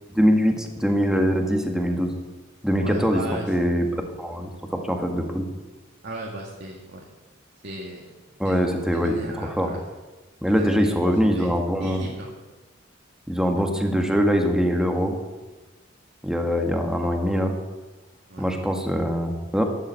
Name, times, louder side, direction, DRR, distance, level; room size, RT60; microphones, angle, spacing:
voice 1, 0.1-2.1 2.6-3.2 3.5-4.5 4.9-5.5 8.4-9.7 10.4-12.1 13.3-15.1 16.2-17.5 18.4-19.6, equal, 5° right, 3 dB, 1.8 m, -23 dB
voice 2, 2.8-3.5 6.0-7.0 7.6-8.1 8.4-8.7 8.9-9.8 10.6-11.1 11.3-11.5 11.8-12.3 18.3-18.5, right 1 dB, 60° right, -2 dB, 2.0 m, -36 dB
13.0 x 11.0 x 7.7 m, 1.2 s
head